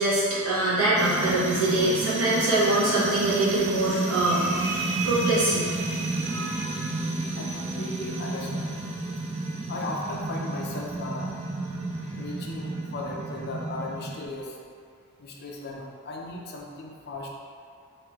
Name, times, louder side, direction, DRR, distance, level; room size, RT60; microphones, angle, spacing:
voice 1, 0.0-6.6, right 2 dB, 75° right, -8 dB, 1.1 m, -24 dB
sound 1, 1.0-14.3, right 2 dB, 30° right, 0.3 m, -31 dB
voice 2, 7.3-8.8 9.7-11.3 12.0-14.6 15.2-17.3, left 2 dB, 45° left, -1 dB, 0.4 m, -36 dB
3.1 x 2.8 x 3.4 m, 2.3 s
head